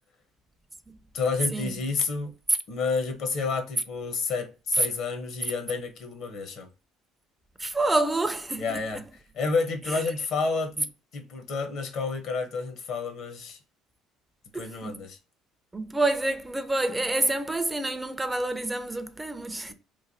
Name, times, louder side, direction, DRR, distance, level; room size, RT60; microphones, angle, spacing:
voice 1, 1.1-2.3 2.7-6.7 8.6-9.0 9.3-13.6 14.5-15.2, left 4 dB, 60° left, 0.7 m, -30 dB
voice 2, 7.6-9.0 9.9-10.0 14.5-14.9 15.7-19.7, right 2 dB, 15° right, 0.3 m, -28 dB
3.1 x 2.2 x 2.5 m
supercardioid pair, 90°, 0 cm